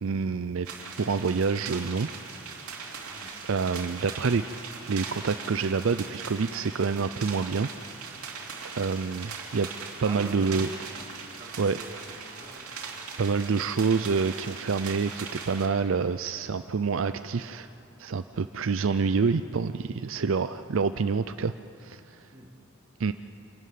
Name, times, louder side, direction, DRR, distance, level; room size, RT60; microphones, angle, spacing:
voice 1, 0.0-0.7 1.0-2.1 3.5-4.4 4.8-7.7 8.6-9.7 10.0-10.7 11.6-11.8 13.2-17.7 18.0-21.5 21.8-22.0 23.0-23.1, right 5 dB, 65° right, 10 dB, 0.5 m, -27 dB
sound 1, 0.6-15.7, right 5 dB, 85° right, 2.9 m, -40 dB
voice 2, 10.0-10.9 11.4-13.0 22.3-22.5, right 1 dB, 20° right, -3 dB, 3.3 m, -45 dB
27.0 x 12.5 x 9.4 m, 2.8 s
head